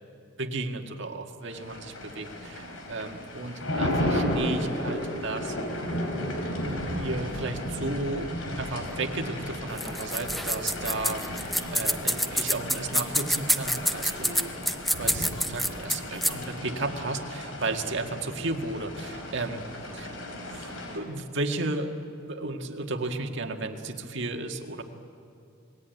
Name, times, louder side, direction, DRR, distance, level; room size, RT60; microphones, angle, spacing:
voice 1, 0.4-5.6 6.9-8.3 8.6-11.2 11.7-14.5 14.9-19.6 19.9-20.1 20.5-20.6 20.9-21.9 22.3-24.8, right 2 dB, 60° right, 4 dB, 1.9 m, -33 dB
sound 1, 1.5-21.0, left 1 dB, 85° left, 4.7 m, -34 dB
sound 2, 9.7-16.4, equal, ahead, 0.8 m, -27 dB
28.0 x 20.5 x 9.3 m, 2.5 s
head